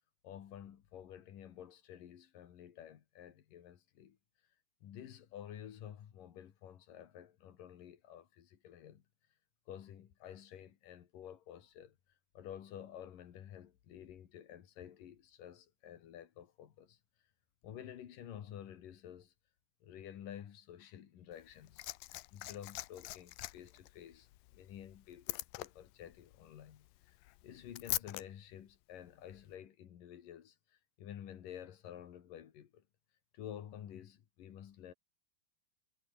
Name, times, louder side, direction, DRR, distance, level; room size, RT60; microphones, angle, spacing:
voice 1, 0.2-4.2 4.8-9.0 9.7-12.0 12.3-17.0 17.6-19.3 19.8-21.8 22.3-27.2 27.4-32.8 33.3-34.9, left 10 dB, 60° left, 3.3 m, -51 dB
Liquid, 21.3-28.2 29.3-29.4, left 19 dB, 85° left, 2.1 m, -44 dB
omnidirectional pair, 4.7 m